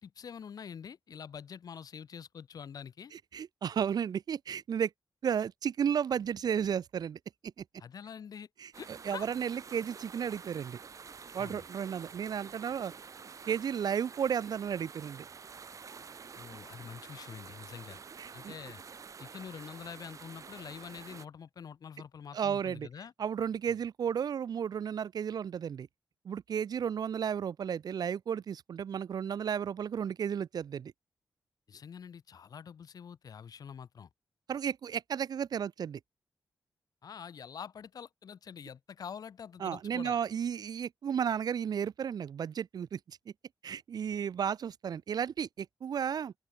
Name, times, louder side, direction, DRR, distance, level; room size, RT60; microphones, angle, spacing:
voice 1, 0.0-3.1 7.8-8.5 8.8-9.3 11.4-11.7 16.4-18.0 18.3-18.8 19.2-23.1 23.7-23.8 31.7-34.1 37.0-40.2, left 7 dB, 70° left, 2.9 m, -46 dB
voice 2, 3.3-4.9 5.2-7.5 8.6-10.8 11.3-12.9 13.5-15.2 18.2-18.5 22.3-22.9 23.2-25.9 26.3-30.9 34.5-36.0 39.6-43.2 43.6-46.3, right 8 dB, 80° right, 1.8 m, -33 dB
sound 1, 8.7-21.3, right 6 dB, 55° right, 5.3 m, -49 dB
open air
wide cardioid pair, 135°, 7 cm